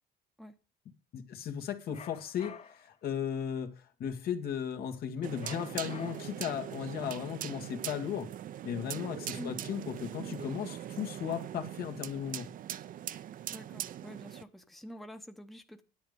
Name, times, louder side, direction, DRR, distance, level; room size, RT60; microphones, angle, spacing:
voice 1, 1.1-8.3 8.6-12.5, left 8 dB, 65° left, 1.9 m, -36 dB
sound 1, 1.9-2.9 5.4-6.5, left 6 dB, 35° left, 0.9 m, -49 dB
sound 2, 5.2-14.4, right 11 dB, 55° right, 0.6 m, -41 dB
voice 2, 13.5-15.8, equal, ahead, 0.9 m, -47 dB
10.5 x 9.4 x 5.3 m
cardioid pair, 110°, 17 cm